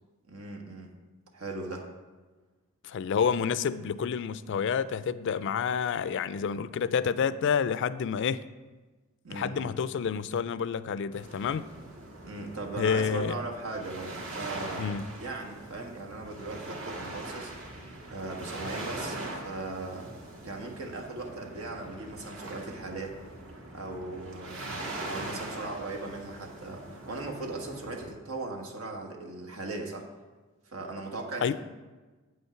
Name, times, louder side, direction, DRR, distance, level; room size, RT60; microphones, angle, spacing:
voice 1, 0.3-0.9 1.3-1.8 9.2-9.7 12.2-17.5 18.1-20.1 20.4-23.2 23.7-30.1 30.7-31.5, right 2 dB, 90° right, 2 dB, 1.4 m, -38 dB
voice 2, 2.8-8.4 9.3-11.6 12.8-13.3 14.8-15.1 31.4-31.5, left 7 dB, 60° left, 15 dB, 0.3 m, -29 dB
sound 1, 11.1-28.1, right 2 dB, 70° right, 1.6 m, -42 dB
8.3 x 5.5 x 5.7 m, 1.3 s
head